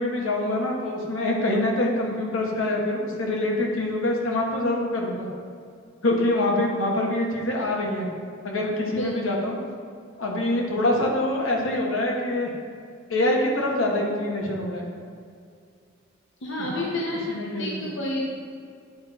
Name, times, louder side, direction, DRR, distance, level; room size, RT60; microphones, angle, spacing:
voice 1, 0.0-5.3 6.0-8.1 8.4-9.6 10.2-12.5 13.1-14.8 16.6-16.8 17.3-17.8, left 1 dB, 90° left, -1 dB, 1.3 m, -25 dB
voice 2, 16.4-18.2, left 1 dB, 65° left, -3 dB, 0.8 m, -30 dB
9.4 x 4.2 x 4.3 m, 2.3 s
head